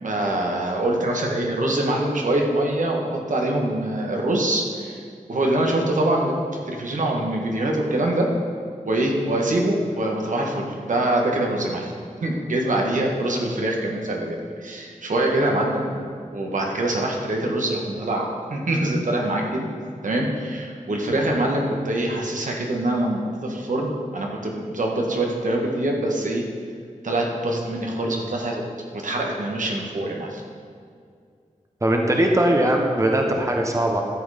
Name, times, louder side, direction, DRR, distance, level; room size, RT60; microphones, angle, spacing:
voice 1, 0.0-5.0 5.3-6.3 6.7-8.3 8.8-11.9 12.2-16.0 16.3-19.7 20.0-26.4 27.0-28.6 28.9-30.4, right 1 dB, 75° right, 0 dB, 1.6 m, -24 dB
voice 2, 31.8-34.0, right 1 dB, 25° right, 1 dB, 1.1 m, -20 dB
13.0 x 7.8 x 5.1 m, 2.2 s
wide cardioid pair, 105°, 13 cm